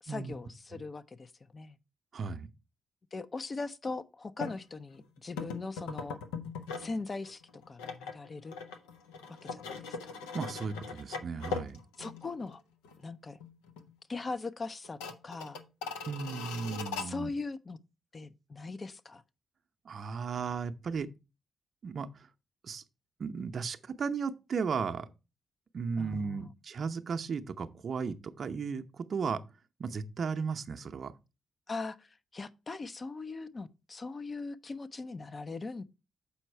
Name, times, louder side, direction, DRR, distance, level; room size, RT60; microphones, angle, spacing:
voice 1, 0.0-1.8 3.1-6.2 6.8-8.5 9.3-10.1 12.0-12.6 13.0-13.4 14.1-15.6 17.0-17.8 18.1-19.2 26.0-26.5 31.7-35.8, left 3 dB, 40° left, 0.5 m, -40 dB
voice 2, 2.1-2.5 10.3-11.8 16.1-17.3 19.9-21.1 21.8-22.3 22.6-22.8 23.2-25.1 25.7-29.4 29.8-31.1, right 5 dB, 60° right, 0.6 m, -35 dB
sound 1, 4.4-4.6 5.4-6.9 7.3-12.6 12.8-13.0 13.4-13.9 14.2-14.3 14.8-17.1, left 5 dB, 90° left, 0.6 m, -40 dB
7.0 x 4.6 x 4.4 m
hypercardioid pair, 45°, 0 cm